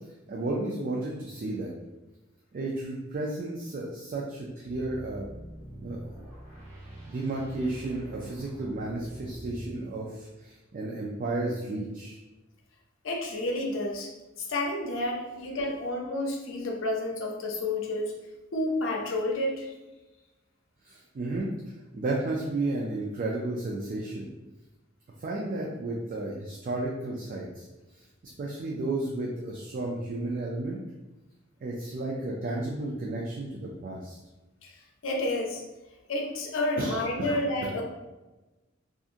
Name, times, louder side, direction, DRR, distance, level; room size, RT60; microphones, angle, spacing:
voice 1, 0.3-1.7 2.5-5.3 5.8-6.3 7.1-12.2 20.8-21.5 21.9-24.3 25.2-27.7 28.4-30.8 31.6-34.2 36.8-37.4, right 2 dB, 45° right, -2 dB, 0.4 m, -33 dB
sound 1, 4.6-9.9, right 1 dB, 20° right, 1.0 m, -45 dB
voice 2, 13.0-14.1 14.4-18.1 18.5-19.7 34.6-34.7 35.0-35.6 36.1-37.9, left 1 dB, 70° left, 0 dB, 0.6 m, -30 dB
2.7 x 2.4 x 2.4 m, 1.1 s
head